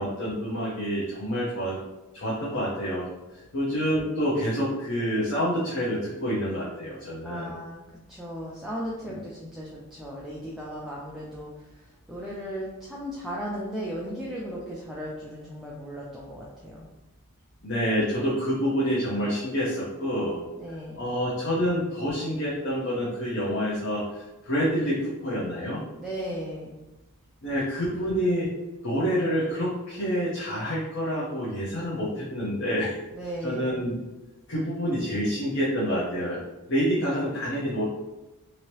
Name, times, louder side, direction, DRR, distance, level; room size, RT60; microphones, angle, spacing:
voice 1, 0.0-1.8 2.1-3.1 3.5-7.5 9.1-9.2 17.6-20.4 21.0-25.8 27.4-28.5 28.8-32.9 33.4-33.9 34.5-36.4 36.7-37.8, equal, 55° left, -7 dB, 0.8 m, -27 dB
voice 2, 7.2-7.8 8.1-11.7 12.1-16.9 20.6-21.0 25.9-26.8 33.1-33.8, equal, ahead, -6 dB, 0.4 m, -36 dB
2.9 x 2.7 x 3.0 m, 1.0 s
head